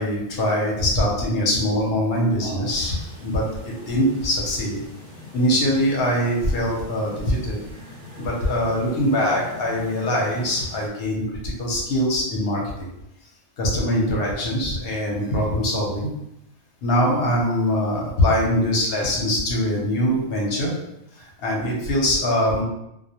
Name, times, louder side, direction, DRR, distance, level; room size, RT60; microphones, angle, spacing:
voice 1, 0.0-4.8 5.3-7.6 8.2-12.9 13.6-16.1 16.8-20.7 21.2-22.6, equal, 55° left, -3 dB, 0.7 m, -23 dB
sound 1, 2.6-10.9, left 1 dB, 60° right, 0.5 m, -41 dB
2.2 x 2.1 x 2.8 m, 0.82 s
omnidirectional pair, 1.4 m